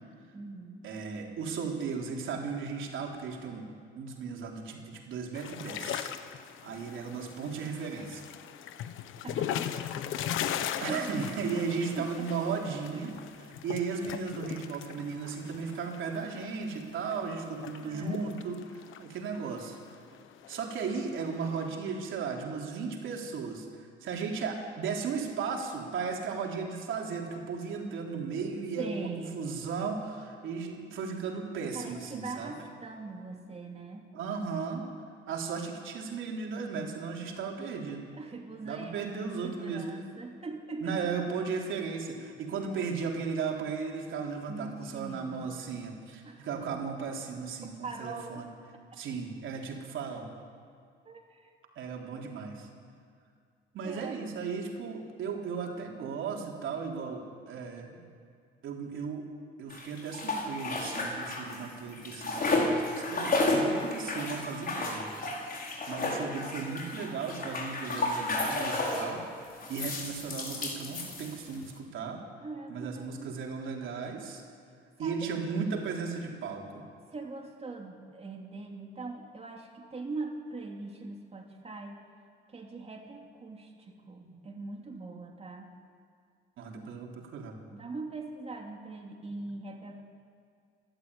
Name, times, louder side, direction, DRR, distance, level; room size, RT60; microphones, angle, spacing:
voice 1, 0.3-0.9 9.2-10.1 10.3-10.4 10.8-11.3 12.0-12.3 12.9-13.2 17.8-18.3 28.8-29.5 31.7-34.1 38.1-41.2 42.6-42.8 44.5-45.6 46.2-46.5 47.6-48.4 51.0-51.5 53.8-54.2 72.4-73.3 75.0-75.2 77.1-82.0 82.5-85.7 87.7-90.0, right 3 dB, 30° right, 1 dB, 3.0 m, -41 dB
voice 2, 0.8-3.7 3.9-6.1 6.4-8.3 10.8-19.8 20.5-32.5 34.1-34.9 35.3-38.1 38.6-39.8 40.8-48.5 48.9-50.3 51.8-52.7 53.7-58.0 58.6-59.3 59.6-65.1 65.9-72.2 72.7-74.4 75.0-76.9 84.2-84.3 86.6-87.6, right 5 dB, 80° right, 0 dB, 3.8 m, -36 dB
sound 1, 5.3-16.5 16.8-16.9 17.1-19.1 19.3-21.7, left 10 dB, 85° left, 1.1 m, -39 dB
sound 2, 59.7-61.7 61.9-69.1 69.6-71.6, left 2 dB, 45° left, 5.0 m, -32 dB
28.0 x 13.0 x 9.8 m, 2.2 s
cardioid pair, 90°, 20 cm